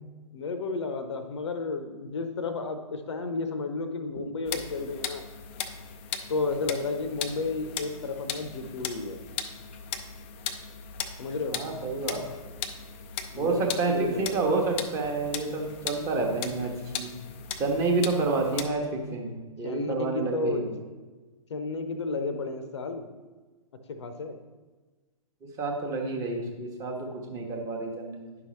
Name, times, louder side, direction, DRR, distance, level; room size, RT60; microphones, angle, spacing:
voice 1, 0.3-5.2 6.3-9.2 11.2-11.6 13.3-14.5 19.6-20.6 21.5-23.1 23.9-24.4, left 3 dB, 50° left, 8 dB, 0.7 m, -32 dB
sound 1, 4.5-18.7, left 7 dB, 20° left, 0.3 m, -38 dB
voice 2, 11.5-12.2 13.4-17.1 17.6-20.6 25.4-28.3, right 3 dB, 20° right, 1 dB, 1.0 m, -29 dB
9.8 x 5.7 x 3.1 m, 1.3 s
figure-of-eight pair, 120°, 19 cm